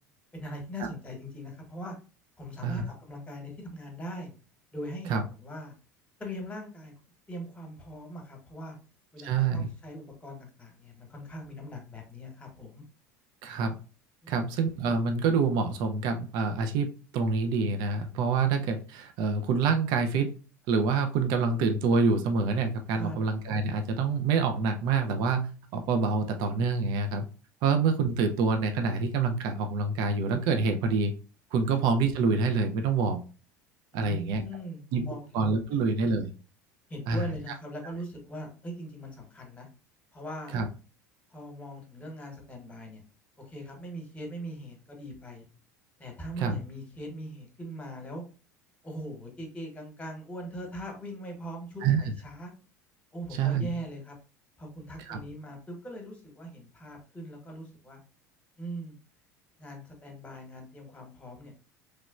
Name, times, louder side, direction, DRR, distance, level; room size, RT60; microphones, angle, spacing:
voice 1, 0.3-1.9 2.4-4.3 4.7-5.7 6.2-6.9 7.3-8.8 9.1-12.8 14.2-14.5 22.9-23.2 31.7-31.8 33.9-35.4 35.7-35.8 36.9-39.7 40.1-40.6 41.3-43.0 43.4-45.4 46.0-48.2 48.8-52.5 53.1-54.2 54.6-58.0 58.6-59.0 59.6-61.5, equal, 15° left, 2 dB, 1.2 m, -41 dB
voice 2, 9.2-9.7 13.4-13.8 14.3-16.9 17.1-20.3 20.7-27.3 27.6-31.1 31.5-33.2 33.9-34.4 34.9-35.0 35.3-36.3 37.1-37.2 40.5-40.7 46.4-46.6 51.8-52.0 53.4-53.7 55.1-55.2, right 4 dB, 50° right, 6 dB, 0.5 m, -26 dB
3.1 x 2.9 x 2.3 m, 0.35 s
figure-of-eight pair, 70°, 9 cm